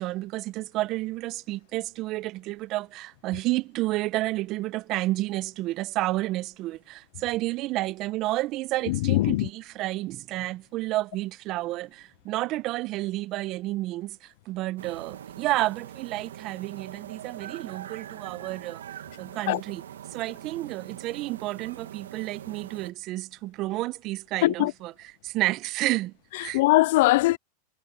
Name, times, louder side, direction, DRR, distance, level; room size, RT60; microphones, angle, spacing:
voice 1, 0.0-18.8 19.2-19.8 20.1-24.9 25.2-26.6, right 18 dB, 45° right, 0.9 m, -30 dB
voice 2, 8.9-9.5 19.5-19.6 24.4-24.7 26.4-27.4, left 19 dB, 65° left, 0.4 m, -21 dB
sound 1, 14.8-22.9, right 10 dB, 85° right, 2.0 m, -43 dB
hypercardioid pair, 105°, 0 cm